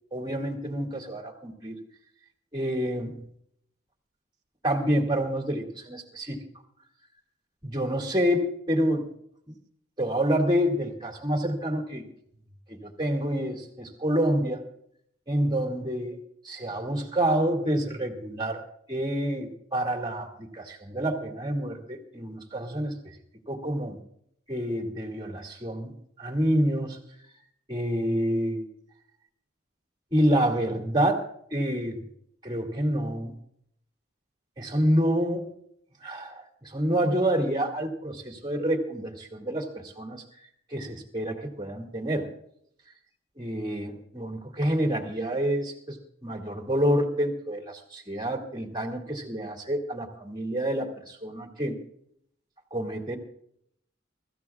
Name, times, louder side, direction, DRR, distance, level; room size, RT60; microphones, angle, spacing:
voice 1, 0.1-1.8 2.5-3.3 4.6-6.4 7.6-9.1 9.5-9.6 10.0-12.0 12.7-14.6 15.3-18.6 18.9-22.9 23.5-24.0 24.5-27.0 27.7-28.7 30.1-32.0 32.4-33.3 34.6-35.5 36.0-40.2 40.7-42.3 43.4-46.0 46.2-51.8 52.7-53.2, equal, 20° right, 1 dB, 2.3 m, -28 dB
24.0 x 14.5 x 2.4 m, 0.70 s
head